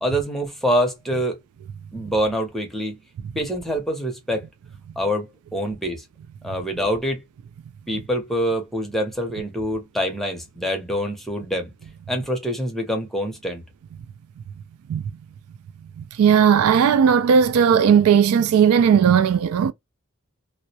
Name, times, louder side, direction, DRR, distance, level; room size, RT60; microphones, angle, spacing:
voice 1, 0.0-1.4 1.9-3.0 3.4-4.4 5.0-6.0 6.4-7.2 7.9-11.7 12.1-13.6, equal, ahead, 0.6 m, -25 dB
voice 2, 16.2-19.7, right 7 dB, 85° right, 0.3 m, -16 dB
2.3 x 2.1 x 2.7 m
head